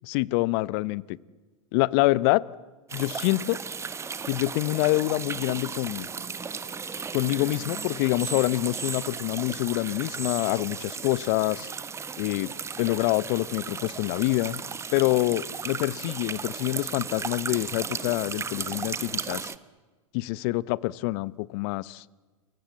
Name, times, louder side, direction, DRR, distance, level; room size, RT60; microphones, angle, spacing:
voice 1, 0.0-1.2 1.7-2.4 2.9-3.6 4.3-6.1 7.1-11.7 12.2-12.5 12.8-14.6 14.9-19.5 20.1-22.0, left 20 dB, 50° left, 22 dB, 0.8 m, -26 dB
sound 1, 2.9-19.6, right 5 dB, 15° right, 1.3 m, -35 dB
28.5 x 23.0 x 8.2 m, 1.3 s
hypercardioid pair, 95°, 17 cm